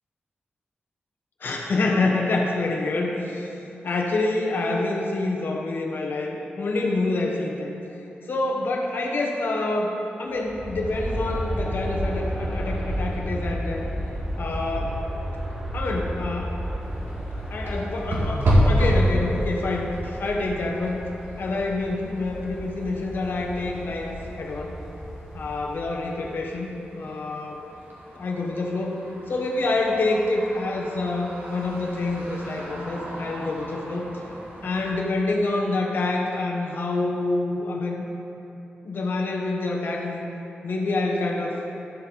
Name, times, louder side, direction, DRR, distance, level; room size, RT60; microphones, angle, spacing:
voice 1, 1.4-3.5 3.8-7.7 8.3-13.9 14.4-15.0 15.3-15.4 15.7-16.5 17.5-21.1 21.4-24.8 25.3-27.7 28.1-29.0 29.3-34.1 34.6-38.0 38.8-40.2 40.6-41.6, left 2 dB, 65° left, 0 dB, 1.1 m, -27 dB
Aircraft, 10.3-26.4, equal, 10° right, 1.4 m, -33 dB
sound 1, 16.8-35.0, equal, 80° right, 1.8 m, -30 dB
11.5 x 7.2 x 3.9 m, 2.8 s
wide cardioid pair, 175°, 4 cm